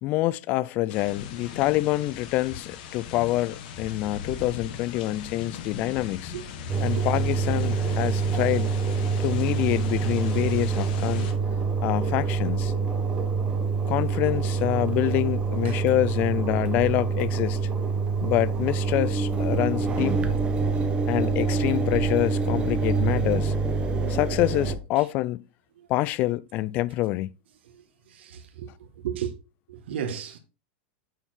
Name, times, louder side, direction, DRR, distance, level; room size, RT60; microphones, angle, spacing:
voice 1, 0.0-6.3 6.8-8.7 9.2-11.3 11.8-12.7 13.9-17.7 18.2-20.2 21.1-23.5 24.1-25.4 25.9-27.3, left 16 dB, 30° left, 0.3 m, -26 dB
sound 1, 0.9-11.3, left 7 dB, 50° left, 1.4 m, -39 dB
Engine, 6.7-24.8, right 4 dB, 15° right, 1.0 m, -26 dB
voice 2, 28.1-28.7 29.0-29.3 29.7-30.4, right 9 dB, 85° right, 1.8 m, -34 dB
8.9 x 4.6 x 4.4 m
supercardioid pair, 170°, 6 cm